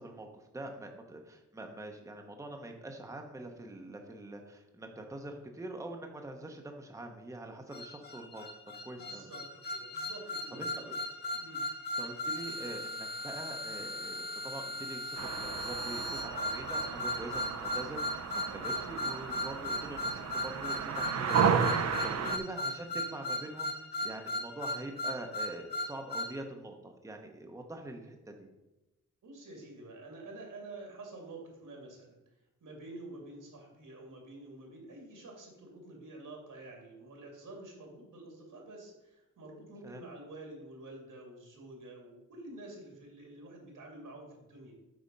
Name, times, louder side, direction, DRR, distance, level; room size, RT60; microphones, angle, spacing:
voice 1, 0.0-8.4 8.8-9.3 10.5-10.9 11.3-11.4 12.0-23.7 24.0-28.5 39.8-40.0, right 2 dB, 10° right, 3 dB, 0.7 m, -44 dB
sound 1, 7.7-26.4, left 1 dB, 35° left, 0.7 m, -37 dB
voice 2, 9.0-11.1 11.4-11.7 22.1-22.4 29.2-32.2 32.6-44.7, right 2 dB, 80° right, 1 dB, 2.3 m, -49 dB
sound 2, 15.2-22.4, right 7 dB, 55° right, 0.6 m, -33 dB
8.3 x 4.2 x 5.3 m, 0.97 s
wide cardioid pair, 150°, 31 cm